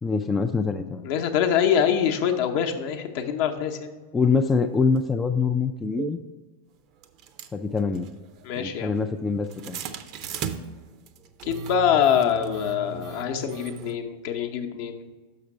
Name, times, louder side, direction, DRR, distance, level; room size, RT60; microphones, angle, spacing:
voice 1, 0.0-1.0 4.1-6.2 7.5-8.1 8.6-9.8, left 4 dB, 15° left, 5 dB, 0.3 m, -24 dB
voice 2, 1.0-3.9 8.4-8.9 11.4-15.1, left 8 dB, 50° left, 5 dB, 0.7 m, -24 dB
sound 1, 5.0-5.1 6.0-6.1 7.0-14.0, right 6 dB, 40° right, 0.5 m, -37 dB
6.4 x 5.7 x 4.7 m, 1.4 s
figure-of-eight pair, 90°, 0 cm